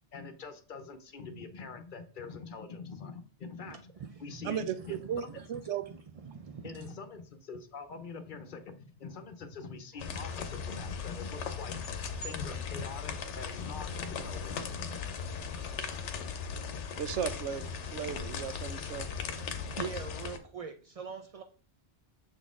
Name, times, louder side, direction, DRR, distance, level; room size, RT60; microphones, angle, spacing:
voice 1, 0.1-3.9 4.2-5.4 6.6-11.9 12.2-15.1, left 4 dB, 50° left, 9 dB, 0.8 m, -44 dB
voice 2, 3.7-4.5 4.8-5.5 5.8-6.9 19.3-21.4, right 6 dB, 65° right, 6 dB, 0.3 m, -44 dB
voice 3, 4.4-5.8 17.0-19.1, right 8 dB, 85° right, 12 dB, 0.9 m, -36 dB
sound 1, 10.0-20.4, left 6 dB, 85° left, 1.0 m, -38 dB
6.6 x 4.1 x 3.6 m, 0.39 s
omnidirectional pair, 1.2 m